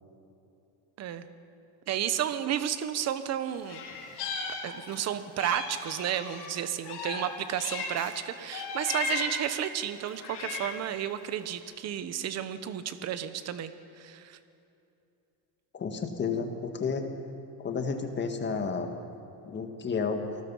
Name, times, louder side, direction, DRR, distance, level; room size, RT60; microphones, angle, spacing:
voice 1, 1.9-3.8 4.6-14.4, right 10 dB, 35° right, 12 dB, 1.0 m, -32 dB
Meow, 3.6-5.0 5.4-8.1 8.5-9.5 10.1-10.9, left 4 dB, 55° left, 4.7 m, -36 dB
voice 2, 15.7-17.1 17.6-18.9 19.5-20.2, left 5 dB, 20° left, 5 dB, 1.6 m, -31 dB
28.5 x 20.0 x 5.6 m, 2.8 s
cardioid pair, 175°, 47 cm